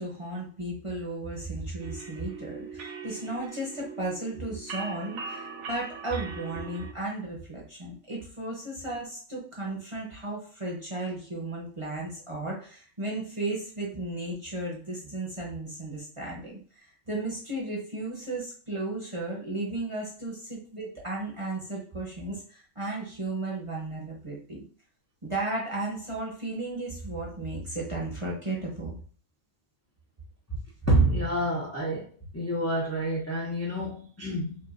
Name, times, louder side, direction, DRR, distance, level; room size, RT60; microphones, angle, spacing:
voice 1, 0.0-24.6 25.2-29.0, right 2 dB, 25° right, -4 dB, 0.9 m, -35 dB
sound 1, 1.8-6.9, right 5 dB, 65° right, 0.9 m, -41 dB
voice 2, 30.8-32.0 32.3-34.6, right 1 dB, 15° left, -4 dB, 0.6 m, -27 dB
5.2 x 2.5 x 2.6 m, 0.43 s
omnidirectional pair, 1.4 m